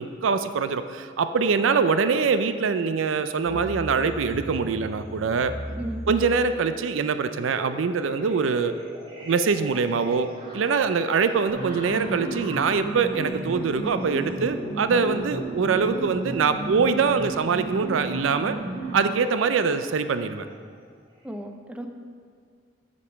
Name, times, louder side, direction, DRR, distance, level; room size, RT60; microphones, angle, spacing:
voice 1, 0.0-5.5 6.1-8.8 9.2-10.3 10.5-18.6 18.9-20.5, right 5 dB, 80° right, 10 dB, 0.4 m, -23 dB
sound 1, 3.4-19.3 20.0-20.7 21.1-21.3, equal, 30° right, 2.5 m, -41 dB
voice 2, 5.8-6.1 21.2-21.9, right 1 dB, 5° right, 4 dB, 0.5 m, -35 dB
sound 2, 11.5-19.1, right 2 dB, 45° right, 1.7 m, -33 dB
8.2 x 5.3 x 5.8 m, 2.1 s
head